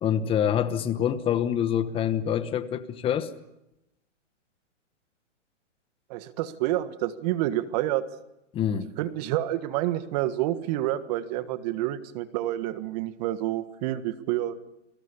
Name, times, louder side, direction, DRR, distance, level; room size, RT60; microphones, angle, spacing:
voice 1, 0.0-3.3 8.5-8.9, left 9 dB, 15° left, 13 dB, 1.0 m, -26 dB
voice 2, 6.1-8.0 9.0-14.6, right 14 dB, 35° right, 12 dB, 1.6 m, -28 dB
29.5 x 20.5 x 7.0 m, 0.88 s
hypercardioid pair, 145°, 37 cm